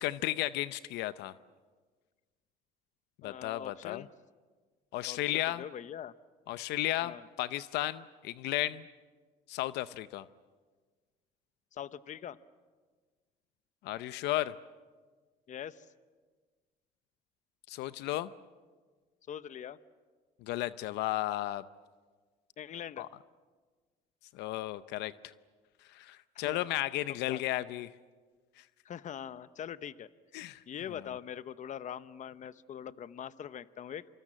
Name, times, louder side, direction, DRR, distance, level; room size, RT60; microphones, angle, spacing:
voice 1, 0.0-1.3 3.2-4.0 4.9-5.6 6.5-8.9 9.5-10.2 13.8-14.5 17.7-18.3 20.4-21.6 23.0-23.1 24.3-25.3 25.9-27.9 30.3-30.6, left 15 dB, 85° left, 15 dB, 0.7 m, -34 dB
voice 2, 3.2-4.1 5.1-6.1 7.0-7.3 11.7-12.4 15.5-15.9 19.3-19.8 22.6-23.1 26.3-26.7 27.3-27.4 28.8-30.1 30.7-34.1, left 9 dB, 45° left, 15 dB, 0.9 m, -43 dB
26.5 x 26.0 x 7.6 m, 1.4 s
cardioid pair, 110°, 17 cm